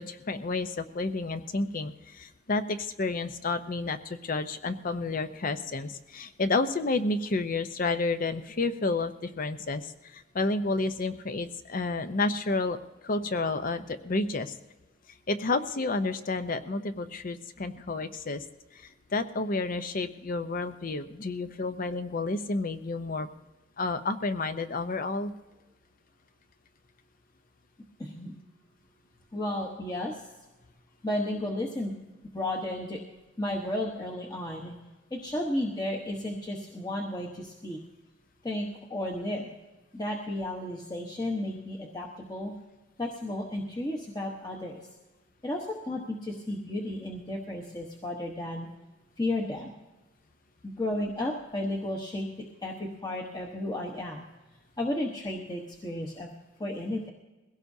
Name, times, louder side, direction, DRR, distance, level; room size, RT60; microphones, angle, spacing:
voice 1, 0.0-12.8 13.0-14.6 15.3-18.4 18.7-23.3 23.8-25.3, left 3 dB, 45° left, 10 dB, 0.7 m, -30 dB
voice 2, 28.0-28.3 29.3-30.2 31.0-31.9 32.3-33.0 33.4-34.7 35.1-37.8 38.4-39.5 39.9-42.5 43.0-44.8 45.4-48.7 49.2-49.7 50.6-52.3 52.6-54.2 54.8-56.3 56.6-57.1, left 1 dB, 20° left, 0 dB, 1.1 m, -33 dB
21.5 x 16.5 x 2.7 m, 1.1 s
head